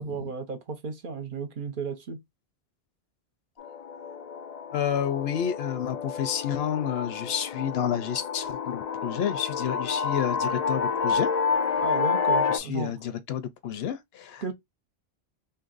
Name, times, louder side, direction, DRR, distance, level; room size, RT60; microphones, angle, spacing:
voice 1, 0.0-2.2 11.8-13.0 14.4-14.5, right 5 dB, 60° right, 0.8 m, -34 dB
sound 1, 3.6-12.6, left 5 dB, 55° left, 0.4 m, -29 dB
voice 2, 4.7-11.3 12.5-14.5, left 9 dB, 75° left, 0.8 m, -30 dB
2.7 x 2.6 x 3.9 m
omnidirectional pair, 1.1 m